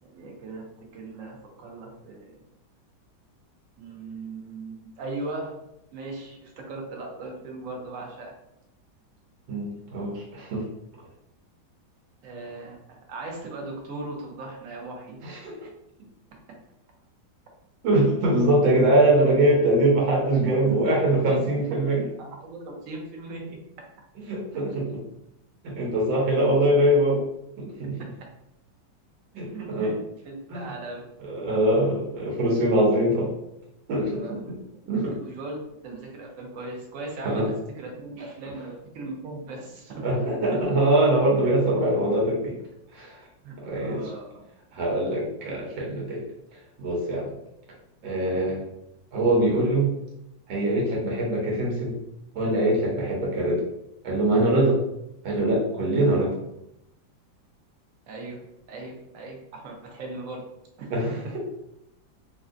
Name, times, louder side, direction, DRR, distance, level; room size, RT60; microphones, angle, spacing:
voice 1, 0.0-2.5 3.8-5.6 5.9-8.4 12.2-15.2 15.6-15.7 20.4-21.4 22.2-23.6 28.0-28.1 29.3-30.0 30.2-31.1 33.9-34.4 34.8-40.1 40.5-40.7 43.4-44.4 56.1-56.3 58.1-58.4 58.7-60.5 60.8-61.3, right 2 dB, 65° right, 0 dB, 0.8 m, -38 dB
voice 2, 9.5-10.7 15.2-15.5 17.8-22.0 24.3-25.0 25.6-27.2 27.6-28.0 29.3-29.9 30.5-30.6 31.3-33.3 33.9-34.2 34.9-35.2 37.2-37.5 40.0-42.5 42.9-43.2 43.6-44.0 44.7-46.2 46.8-47.3 48.0-48.6 49.1-49.9 50.5-52.0 52.3-53.6 54.0-54.8 55.2-56.3 60.9-61.4, right 1 dB, 85° right, -3 dB, 1.6 m, -23 dB
3.2 x 2.6 x 2.4 m, 0.85 s
omnidirectional pair, 2.1 m